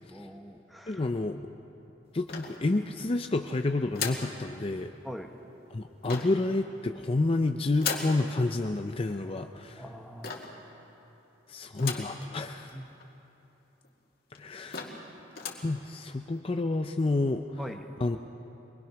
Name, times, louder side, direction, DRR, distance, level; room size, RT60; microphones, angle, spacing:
voice 1, 0.1-1.0 5.0-5.3 9.8-10.4 12.7-12.9 17.6-17.9, equal, ahead, 4 dB, 1.1 m, -42 dB
voice 2, 0.9-1.5 2.1-4.9 5.7-9.8 11.5-12.8 14.3-14.8 15.6-17.6 18.0-18.2, left 2 dB, 30° left, 6 dB, 0.5 m, -29 dB
sound 1, 2.3-3.0 3.9-4.4 6.0-6.5 7.8-8.2 10.2-10.6 11.8-12.2 12.7-12.8 13.0-13.1 13.8-13.9 14.4-14.5 14.7-15.1 15.3-15.7, left 6 dB, 55° left, 2.2 m, -36 dB
23.5 x 20.5 x 5.9 m, 2.9 s
head